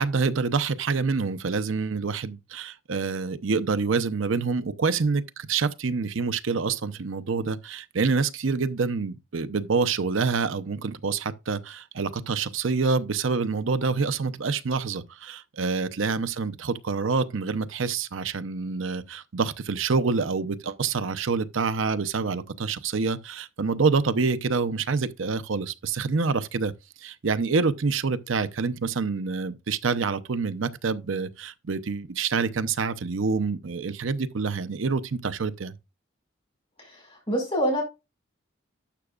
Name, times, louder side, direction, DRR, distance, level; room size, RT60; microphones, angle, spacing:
voice 1, 0.0-26.7 27.0-35.7, right 4 dB, 80° right, 0.7 m, -27 dB
voice 2, 36.8-37.8, equal, 30° left, 5.0 m, -27 dB
11.5 x 7.0 x 2.4 m
head